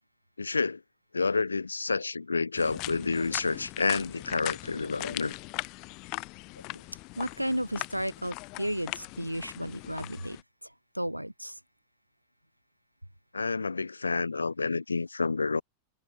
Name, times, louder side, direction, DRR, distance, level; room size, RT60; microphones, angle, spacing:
voice 1, 0.4-0.8 1.1-5.3 13.3-15.6, left 4 dB, 80° left, 1.0 m, -29 dB
sound 1, 2.5-10.4, left 27 dB, 40° left, 1.2 m, -40 dB
voice 2, 7.2-10.4 10.9-11.5, equal, 90° right, 0.6 m, -33 dB
figure-of-eight pair, 90°, 0 cm